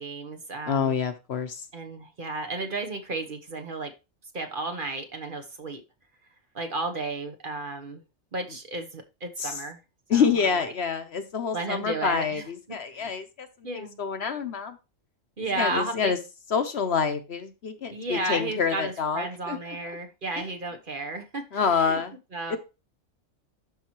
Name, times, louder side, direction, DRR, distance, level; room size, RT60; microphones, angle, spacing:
voice 1, 0.0-1.0 1.7-3.9 4.3-5.8 6.5-8.0 8.3-9.8 10.1-10.7 11.5-13.2 13.6-14.0 15.4-16.1 17.9-22.0 22.3-22.6, right 2 dB, 45° right, 1.2 m, -33 dB
voice 2, 0.7-1.6 9.4-9.6 10.1-13.5 13.7-14.8 15.6-16.2 16.5-19.6 21.5-22.1 22.5-22.6, left 6 dB, 55° left, 1.1 m, -27 dB
12.0 x 4.3 x 2.9 m
omnidirectional pair, 1.3 m